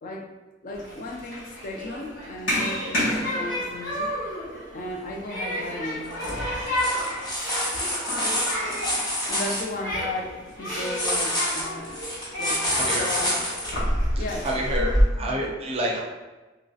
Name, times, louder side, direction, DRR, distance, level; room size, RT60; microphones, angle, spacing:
voice 1, 0.6-4.2 4.7-6.2 9.3-12.0 12.4-13.4 14.2-15.6, left 2 dB, 45° left, 1 dB, 0.3 m, -35 dB
Human group actions, 0.7-15.0, equal, 90° left, 1.4 m, -29 dB
sound 1, 6.1-6.3 6.7-9.6 10.8-13.7 14.5-14.6, left 1 dB, 20° left, 0.8 m, -27 dB
voice 2, 12.7-13.1 14.2-14.9 15.2-16.0, equal, 30° right, -1 dB, 0.4 m, -28 dB
3.0 x 2.6 x 2.4 m, 1.2 s
head